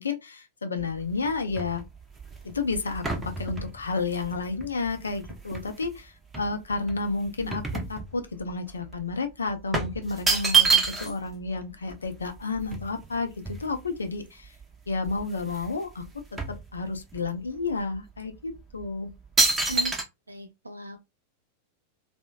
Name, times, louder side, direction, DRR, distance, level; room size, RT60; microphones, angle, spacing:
voice 1, 0.0-1.8 2.4-14.5 14.9-16.1 16.3-19.1, left 4 dB, 75° left, 0.4 m, -31 dB
sound 1, 0.8-5.9 6.3-8.5 8.8-9.0 9.7-11.3 11.6-11.7 11.9-14.1 14.6-14.7 15.0-15.7 16.0-17.2 17.8-18.0 18.6-18.8 19.4-20.0, right 4 dB, 15° right, 0.6 m, -28 dB
voice 2, 20.3-21.0, right 1 dB, 80° right, 0.5 m, -36 dB
2.8 x 2.0 x 2.3 m
figure-of-eight pair, 90°, 0 cm